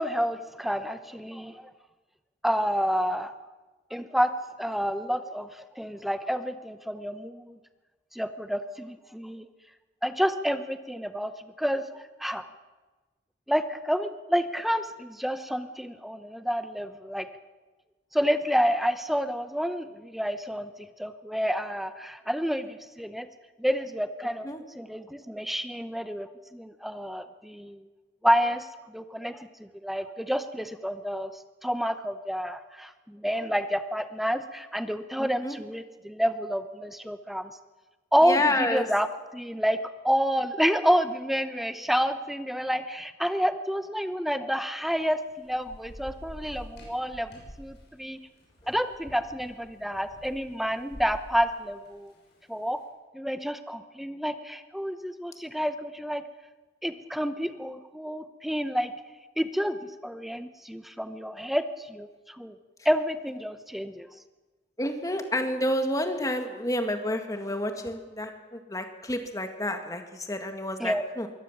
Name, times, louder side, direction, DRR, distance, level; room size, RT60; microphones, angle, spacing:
voice 1, 0.0-1.7 2.4-3.3 3.9-7.6 8.1-9.5 10.0-11.3 11.6-11.8 12.2-12.5 13.5-17.3 18.1-20.7 21.0-23.3 23.6-24.5 24.7-27.9 28.2-31.3 31.6-37.5 38.1-39.1 39.3-48.2 48.7-52.1 52.5-52.8 53.1-56.2 56.8-58.9 59.4-59.8 60.0-62.5 62.8-64.1 70.8-71.0, equal, ahead, 10 dB, 0.8 m, -29 dB
voice 2, 35.2-35.6 38.2-38.9 64.8-71.3, left 1 dB, 20° left, 6 dB, 1.9 m, -29 dB
Thunder / Rain, 44.9-52.6, equal, 65° left, 6.8 m, -47 dB
23.0 x 17.5 x 7.3 m, 1.2 s
head